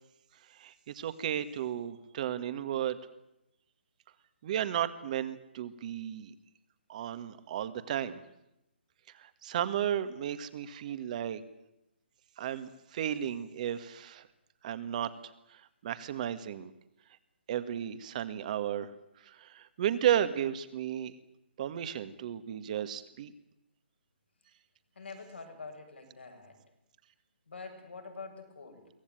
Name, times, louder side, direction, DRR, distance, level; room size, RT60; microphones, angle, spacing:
voice 1, 0.5-3.0 4.4-6.3 6.9-8.2 9.2-11.4 12.4-14.3 14.6-15.1 15.5-16.7 17.5-18.9 19.2-21.1 21.6-23.3, right 10 dB, 40° right, 12 dB, 1.8 m, -34 dB
voice 2, 24.9-26.6 27.5-28.9, left 4 dB, 75° left, 5 dB, 6.6 m, -46 dB
24.0 x 17.5 x 9.2 m, 0.86 s
figure-of-eight pair, 140°, 6 cm